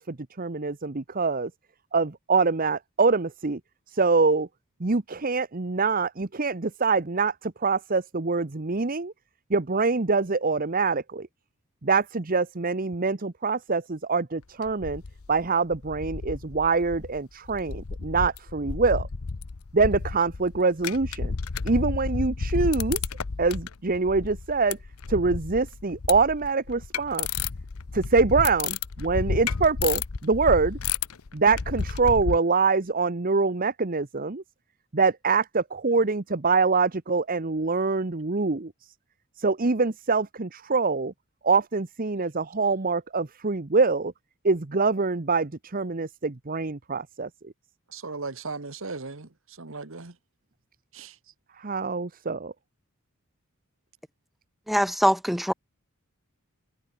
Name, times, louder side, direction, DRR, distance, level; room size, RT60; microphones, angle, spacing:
voice 1, 0.0-1.5 1.9-3.6 3.9-4.5 4.8-9.1 9.5-11.3 11.8-15.0 15.3-19.1 19.7-21.3 21.6-23.0 23.4-24.8 25.1-27.3 27.9-30.8 31.3-34.4 34.9-38.7 39.4-41.1 41.4-44.1 44.4-47.5 51.6-52.5, right 4 dB, 40° right, 1.0 m, -24 dB
sound 1, 14.6-15.5 15.7-17.2 17.5-32.4, left 5 dB, 80° left, 0.8 m, -32 dB
voice 2, 47.9-50.1 50.9-51.2, right 3 dB, 65° right, 1.6 m, -37 dB
voice 3, 54.7-55.5, equal, ahead, 1.2 m, -22 dB
head